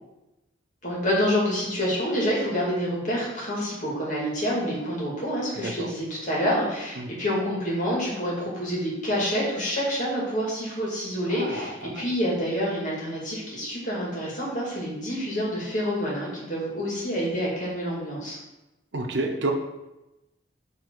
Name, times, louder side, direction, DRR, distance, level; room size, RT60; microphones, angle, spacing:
voice 1, 0.8-18.4, equal, 40° left, -5 dB, 2.2 m, -27 dB
voice 2, 11.3-12.0 18.9-19.5, right 2 dB, 75° right, 3 dB, 0.9 m, -30 dB
7.1 x 3.5 x 4.7 m, 0.99 s
head